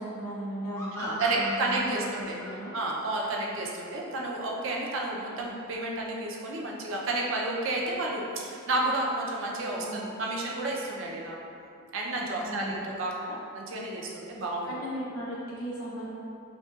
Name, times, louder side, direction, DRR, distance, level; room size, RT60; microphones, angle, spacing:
voice 1, 0.0-2.7 9.7-10.1 12.4-12.9 14.4-16.1, equal, 85° left, -6 dB, 0.9 m, -37 dB
sound 1, 0.7-4.1, equal, 10° left, 0.5 m, -40 dB
voice 2, 0.9-2.4 2.7-11.4 11.9-14.8, right 2 dB, 60° right, -2 dB, 0.5 m, -31 dB
5.3 x 2.3 x 2.4 m, 2.5 s
head